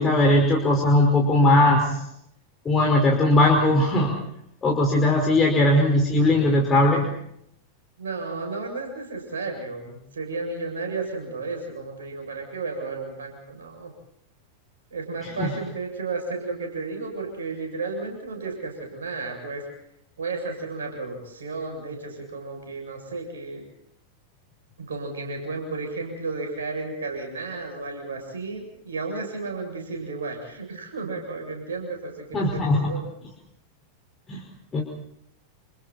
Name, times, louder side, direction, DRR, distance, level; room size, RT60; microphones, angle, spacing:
voice 1, 0.0-1.9 2.7-4.2 4.6-7.1 15.4-15.5 32.3-32.9 34.3-34.4 34.7-34.8, left 1 dB, 20° left, 0 dB, 5.2 m, -19 dB
voice 2, 8.0-13.9 14.9-19.6 20.2-23.6 24.8-33.1, right 3 dB, 70° right, 3 dB, 7.6 m, -33 dB
29.0 x 29.0 x 4.4 m, 0.76 s
figure-of-eight pair, 90°, 0 cm